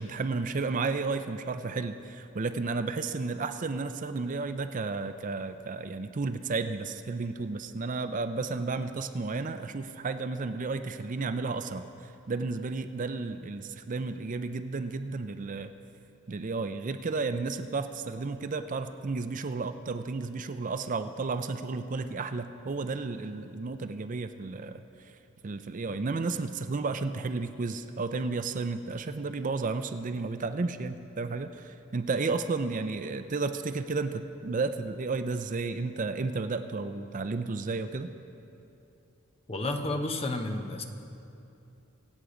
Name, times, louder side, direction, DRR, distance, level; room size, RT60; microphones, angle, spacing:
voice 1, 0.0-15.7 16.3-25.1 25.4-38.1, right 3 dB, 40° right, 9 dB, 0.5 m, -32 dB
voice 2, 39.5-40.8, left 2 dB, 30° left, 5 dB, 0.9 m, -31 dB
24.0 x 8.3 x 5.0 m, 2.8 s
head